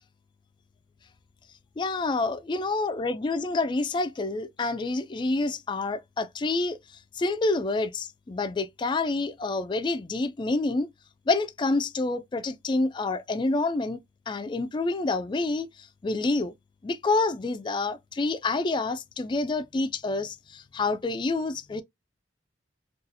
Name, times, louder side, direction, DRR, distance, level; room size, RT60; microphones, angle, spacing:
voice 1, 1.8-6.8 7.1-10.9 11.3-14.0 14.3-15.7 16.0-16.5 16.8-21.8, left 3 dB, 25° left, 0.3 m, -28 dB
4.0 x 2.4 x 2.6 m
head